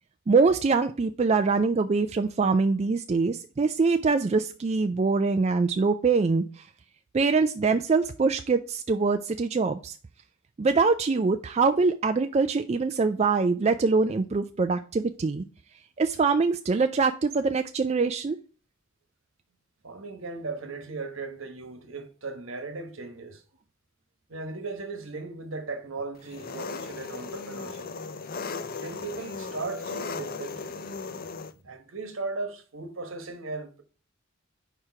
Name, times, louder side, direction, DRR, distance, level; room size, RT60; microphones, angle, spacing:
voice 1, 0.3-6.7 7.1-10.0 10.6-15.4 16.0-18.4, right 4 dB, 30° right, 0.3 m, -24 dB
voice 2, 19.8-23.4 24.3-27.9 28.7-30.7 31.5-33.8, right 3 dB, 70° right, 1.3 m, -37 dB
Engine, 26.2-31.5, left 4 dB, 45° left, 0.5 m, -37 dB
5.0 x 4.6 x 5.8 m
head